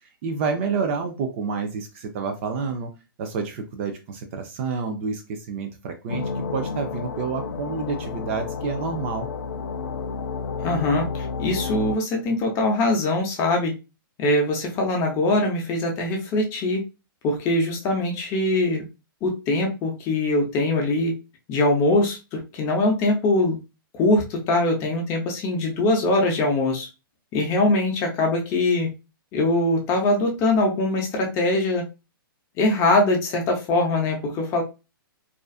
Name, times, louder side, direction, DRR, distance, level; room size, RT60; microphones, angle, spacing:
voice 1, 0.2-2.9 3.2-9.3, right 5 dB, 35° right, 5 dB, 0.4 m, -29 dB
sound 1, 6.1-12.0, left 5 dB, 70° left, 0.4 m, -31 dB
voice 2, 10.6-13.7 14.2-16.8 17.2-18.8 19.2-21.1 21.5-23.6 23.9-26.9 27.3-28.9 29.3-31.8 32.6-34.6, left 2 dB, 25° left, 1 dB, 0.6 m, -22 dB
2.4 x 2.4 x 2.3 m, 0.28 s
hypercardioid pair, 155°, 12 cm